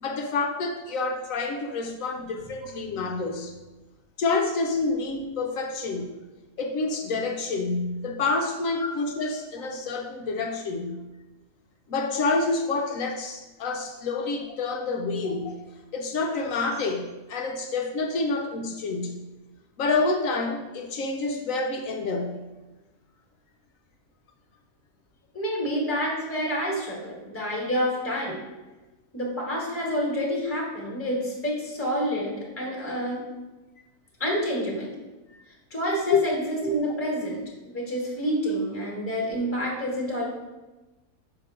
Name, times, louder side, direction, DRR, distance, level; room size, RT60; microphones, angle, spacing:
voice 1, 0.0-3.5 4.2-6.2 6.6-11.0 11.9-15.6 15.9-19.2 19.8-22.4 36.1-36.2, left 3 dB, 65° left, 3 dB, 0.9 m, -28 dB
voice 2, 25.3-28.4 29.1-33.2 34.2-34.9 35.7-37.4 37.7-40.2, equal, 10° left, -3 dB, 1.2 m, -28 dB
6.5 x 2.9 x 5.4 m, 1.1 s
omnidirectional pair, 1.7 m